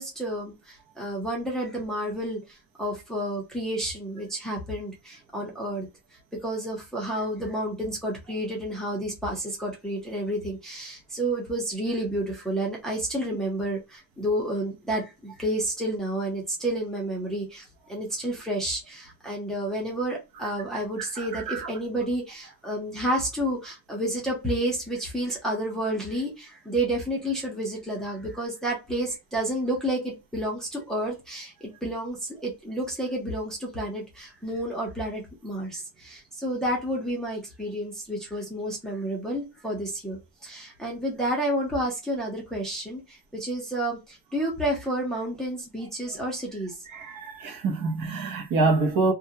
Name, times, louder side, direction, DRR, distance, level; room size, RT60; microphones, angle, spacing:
voice 1, 0.0-5.9 6.4-46.8, right 1 dB, ahead, 0.6 m, -30 dB
voice 2, 21.2-21.7 46.9-49.1, right 3 dB, 50° right, 0.8 m, -26 dB
2.4 x 2.2 x 2.6 m
cardioid pair, 160°, 45 cm